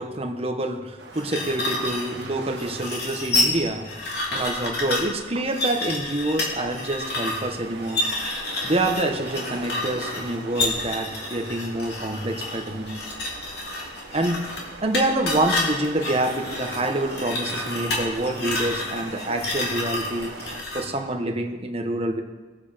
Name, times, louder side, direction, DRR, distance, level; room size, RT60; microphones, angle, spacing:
voice 1, 0.0-3.9 4.3-8.1 8.6-13.0 14.1-14.5 14.8-22.2, right 1 dB, 30° right, 4 dB, 1.2 m, -27 dB
sound 1, 1.0-20.6, right 2 dB, 60° right, 1.7 m, -41 dB
sound 2, 1.1-20.9, left 2 dB, 55° left, 3.2 m, -29 dB
21.5 x 8.0 x 5.1 m, 1.3 s
head